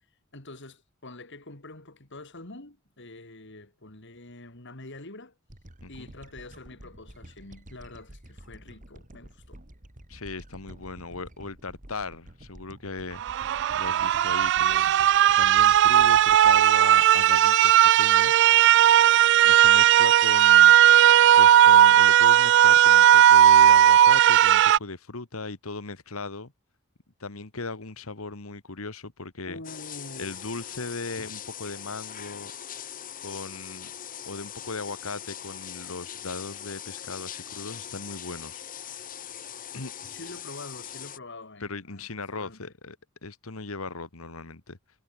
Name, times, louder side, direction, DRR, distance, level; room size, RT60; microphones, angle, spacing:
voice 1, 0.3-5.3 5.9-9.6 29.5-30.4 40.1-42.7, left 2 dB, 60° left, 4.2 m, -45 dB
sound 1, 5.5-18.0, right 1 dB, 40° right, 3.2 m, -49 dB
voice 2, 10.1-13.4 13.7-19.2 19.4-20.7 21.4-26.5 27.2-29.6 30.2-32.5 33.2-33.9 34.3-39.0 39.7-39.9 41.6-43.0 43.2-44.8, left 3 dB, 85° left, 1.7 m, -38 dB
sound 2, 13.2-24.8, right 11 dB, 60° right, 0.3 m, -17 dB
sound 3, 29.6-41.2, left 9 dB, 40° left, 1.3 m, -41 dB
head